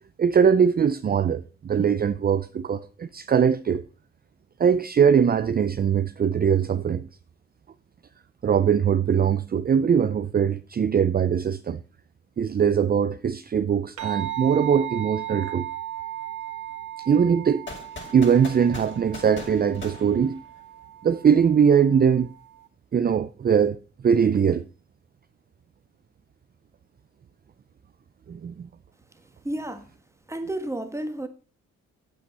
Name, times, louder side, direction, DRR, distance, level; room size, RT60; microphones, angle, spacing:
voice 1, 0.2-3.8 4.6-7.1 8.4-11.8 12.4-15.7 17.1-17.7 18.1-20.4 21.0-22.3 22.9-23.8 24.0-24.6 28.3-28.7, right 7 dB, 30° right, 0.5 m, -21 dB
sound 1, 14.0-22.7, right 12 dB, 75° right, 2.2 m, -36 dB
sound 2, 17.7-20.8, left 3 dB, 40° left, 5.6 m, -41 dB
voice 2, 29.4-29.9 30.3-31.3, right 1 dB, 10° right, 1.5 m, -31 dB
8.8 x 8.6 x 5.5 m
cardioid pair, 90°, 30 cm